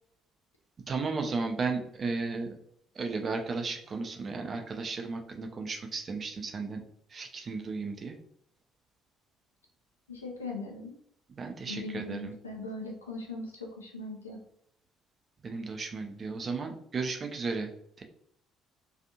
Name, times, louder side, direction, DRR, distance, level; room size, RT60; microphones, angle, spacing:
voice 1, 0.9-2.6 3.0-6.8 7.1-8.2 11.3-12.3 15.4-17.7 18.0-18.1, right 4 dB, 35° right, 4 dB, 0.5 m, -34 dB
voice 2, 10.1-11.0 11.7-14.4, left 2 dB, 85° left, -1 dB, 0.4 m, -40 dB
2.5 x 2.4 x 2.7 m, 0.69 s
figure-of-eight pair, 50°, 0 cm